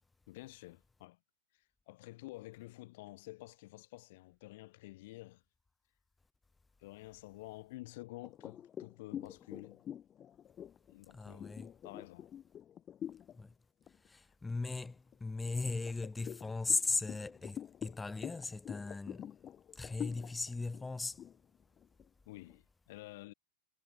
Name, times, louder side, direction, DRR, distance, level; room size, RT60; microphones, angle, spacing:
voice 1, 0.3-1.2 1.9-5.4 6.8-9.9 10.9-11.6 11.8-12.3 22.3-23.3, left 20 dB, 50° left, 5.7 m, -50 dB
sound 1, 8.2-13.4 13.8-14.1 14.5-15.3 15.8-22.6, left 9 dB, 25° left, 6.0 m, -46 dB
voice 2, 11.1-11.7 13.4-13.5 14.0-19.3 19.7-21.2, left 3 dB, 10° left, 4.3 m, -38 dB
figure-of-eight pair, 90°, 0 cm